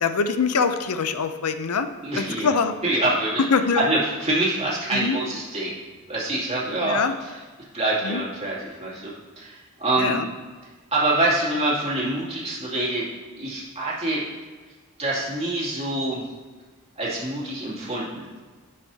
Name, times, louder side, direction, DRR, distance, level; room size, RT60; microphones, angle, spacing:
voice 1, 0.0-1.9 2.2-2.7 3.5-3.9 4.9-5.2 6.8-7.1 8.0-8.2 10.0-10.2, left 5 dB, 90° left, 9 dB, 0.5 m, -23 dB
voice 2, 2.0-2.5 2.8-3.5 3.8-5.7 6.1-7.4 7.7-10.2 10.6-13.1 13.4-14.2 15.0-16.2 17.0-18.3, right 2 dB, 30° right, -6 dB, 2.5 m, -25 dB
11.0 x 7.5 x 2.8 m, 1.4 s
head